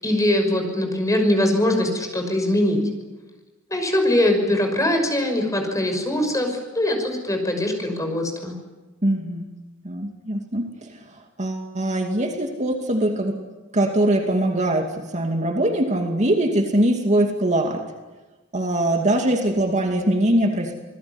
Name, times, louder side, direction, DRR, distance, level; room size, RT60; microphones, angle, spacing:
voice 1, 0.0-2.8 3.7-8.5, left 1 dB, 15° left, 4 dB, 6.0 m, -22 dB
voice 2, 9.0-9.5 9.8-13.4 13.7-17.8 18.5-20.7, right 1 dB, 35° right, 3 dB, 2.5 m, -22 dB
27.5 x 20.0 x 9.8 m, 1.2 s
head